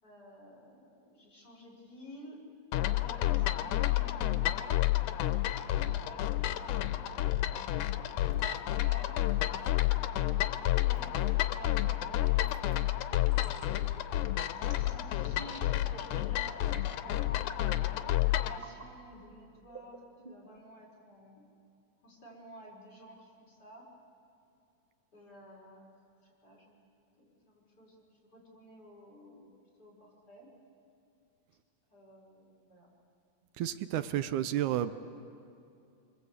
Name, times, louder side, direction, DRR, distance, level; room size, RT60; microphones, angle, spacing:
voice 1, 0.0-2.4 2.9-8.3 8.6-9.1 10.0-13.1 13.4-14.1 14.8-21.5 22.0-23.9 25.1-25.8 26.2-29.5 29.8-30.5 31.9-32.9, equal, 30° left, -3 dB, 5.7 m, -53 dB
sound 1, 2.7-18.6, left 14 dB, 90° left, 2.3 m, -30 dB
sound 2, 8.3-8.6 9.6-9.9 10.9-11.3 12.4-12.8 13.3-13.7 14.6-15.6 15.9-16.3 16.7-17.1 17.4-17.8 18.5-18.9 19.7-20.6, right 2 dB, 15° right, 2.9 m, -51 dB
voice 2, 33.6-34.9, right 11 dB, 80° right, 12 dB, 2.2 m, -31 dB
25.5 x 23.0 x 8.2 m, 2.6 s
omnidirectional pair, 3.4 m